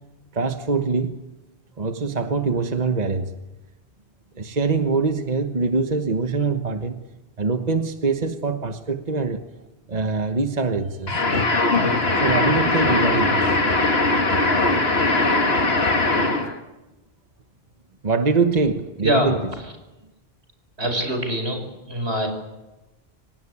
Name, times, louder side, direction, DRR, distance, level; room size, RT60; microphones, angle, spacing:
voice 1, 0.3-1.2 1.8-3.3 4.4-7.0 7.4-9.4 9.9-11.2 12.2-13.5 18.0-19.4, right 4 dB, 40° right, 1.3 m, -23 dB
sound 1, 11.1-16.6, left 2 dB, 70° left, 2.4 m, -20 dB
voice 2, 19.0-19.7 20.8-21.6 21.9-22.3, equal, 80° right, 5.9 m, -24 dB
26.5 x 18.5 x 9.8 m
omnidirectional pair, 1.1 m